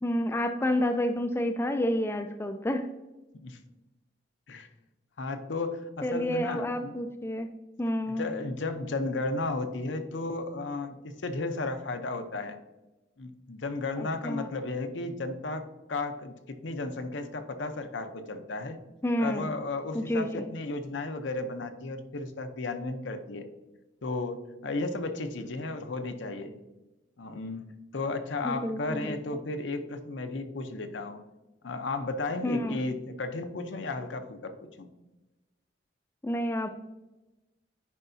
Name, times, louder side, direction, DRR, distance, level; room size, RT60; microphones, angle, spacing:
voice 1, 0.0-2.9 6.0-7.5 7.8-8.3 14.0-14.5 19.0-19.5 19.9-20.5 28.4-29.2 32.4-32.8 36.2-36.7, left 1 dB, 15° left, 7 dB, 0.3 m, -29 dB
voice 2, 5.2-6.9 8.1-12.6 13.2-18.8 19.2-23.5 24.0-24.4 24.6-26.6 27.2-27.6 27.9-31.2 31.6-34.5 34.8-34.9, left 3 dB, 75° left, 8 dB, 0.7 m, -34 dB
9.9 x 4.6 x 2.7 m, 1.0 s
head